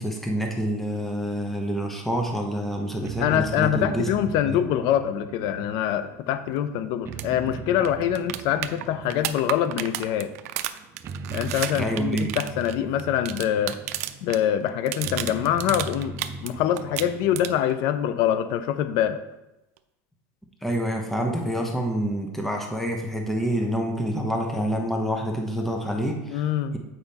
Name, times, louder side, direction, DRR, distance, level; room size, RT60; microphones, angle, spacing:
voice 1, 0.0-4.6 11.7-12.3 20.6-26.8, equal, 5° left, 1 dB, 1.1 m, -27 dB
sound 1, 2.1-17.7, right 5 dB, 30° right, 0.6 m, -40 dB
voice 2, 3.2-10.3 11.3-13.8 14.2-19.2 26.3-26.7, left 10 dB, 60° left, 11 dB, 0.6 m, -25 dB
sound 2, 7.1-7.3 7.5-7.6 7.8-14.4 14.7-16.5 16.8-17.7 19.8-19.9, right 13 dB, 85° right, 0.5 m, -32 dB
8.1 x 5.0 x 4.2 m, 0.94 s
supercardioid pair, 125°, 8 cm